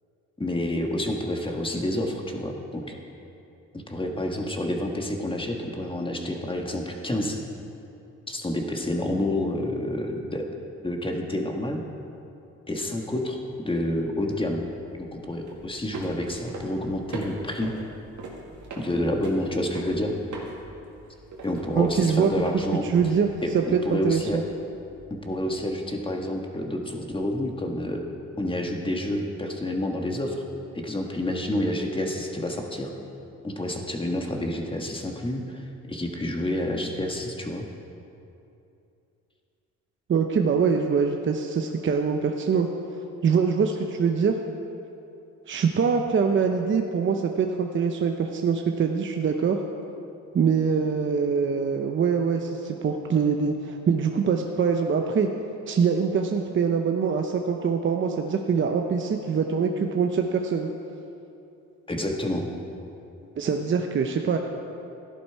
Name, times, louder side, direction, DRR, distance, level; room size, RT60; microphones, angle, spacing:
voice 1, 0.4-2.8 3.7-7.4 8.3-10.4 10.8-11.8 12.7-14.7 15.0-17.8 18.8-20.1 21.4-22.8 23.4-24.4 25.1-28.0 28.4-30.4 30.7-32.9 33.4-35.6 35.9-37.6 61.9-62.5, left 1 dB, 15° left, 2 dB, 1.6 m, -29 dB
sound 1, 14.4-25.3, right 2 dB, 70° right, 2.1 m, -42 dB
voice 2, 21.8-22.3 22.8-24.4 40.1-42.7 43.2-44.3 45.5-49.6 50.3-55.3 55.7-60.7 63.4-64.4, right 6 dB, 40° right, 4 dB, 0.7 m, -24 dB
13.5 x 11.0 x 4.6 m, 2.7 s
cardioid pair, 90°, 30 cm